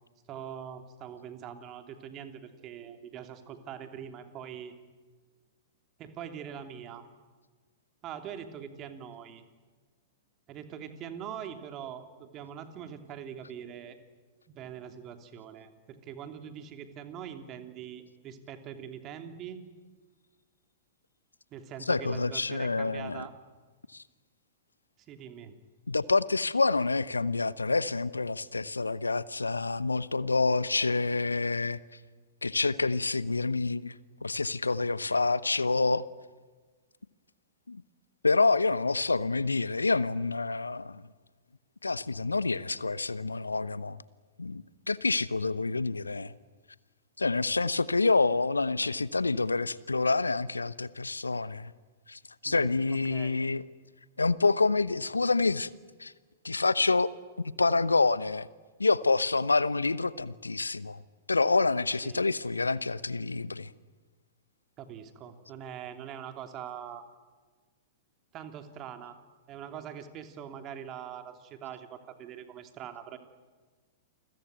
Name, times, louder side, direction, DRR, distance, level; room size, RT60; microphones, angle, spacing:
voice 1, 0.3-4.8 6.0-7.1 8.0-9.4 10.5-14.0 14.5-19.6 21.5-23.3 25.1-25.6 52.4-53.4 62.0-62.3 64.8-67.1 68.3-69.2 69.5-73.2, right 9 dB, 30° right, 7 dB, 3.0 m, -43 dB
voice 2, 21.9-23.2 23.9-24.0 25.9-31.8 32.4-33.9 34.2-36.0 37.7-37.8 38.2-41.0 41.8-44.0 44.4-46.3 47.2-51.7 52.1-53.6 54.2-55.7 56.0-56.1 56.4-57.1 57.4-58.5 58.8-61.0 61.3-63.7, left 3 dB, 85° left, 18 dB, 0.9 m, -27 dB
29.0 x 22.0 x 9.2 m, 1.4 s
figure-of-eight pair, 105°, 0 cm